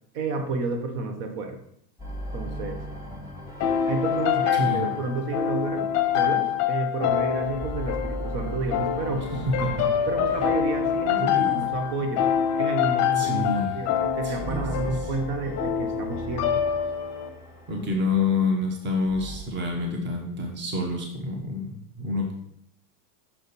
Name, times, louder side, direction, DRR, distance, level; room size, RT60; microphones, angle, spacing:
voice 1, 0.1-1.6 2.3-2.8 3.8-9.4 10.1-12.3 12.5-13.4 13.7-16.6, right 3 dB, 55° right, 6 dB, 1.2 m, -31 dB
sound 1, 2.0-6.9 7.3-12.6 13.4-19.4, right 1 dB, 5° right, 1.3 m, -39 dB
sound 2, 3.6-17.3, left 9 dB, 35° left, 0.7 m, -26 dB
voice 2, 4.3-4.9 9.3-9.9 11.2-11.6 13.1-13.7 14.2-15.1 17.7-22.3, left 2 dB, 25° right, 1 dB, 1.0 m, -28 dB
5.8 x 5.0 x 4.1 m, 0.72 s
supercardioid pair, 140°, 48 cm